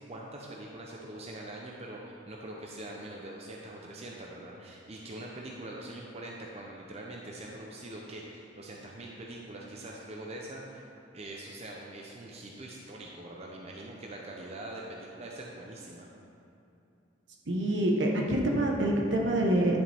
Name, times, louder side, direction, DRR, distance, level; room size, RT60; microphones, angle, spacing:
voice 1, 0.1-10.8 11.1-16.1, right 1 dB, 35° right, -2 dB, 0.7 m, -43 dB
voice 2, 17.5-19.8, right 1 dB, 70° right, -1 dB, 1.2 m, -26 dB
11.0 x 7.2 x 3.5 m, 2.8 s
head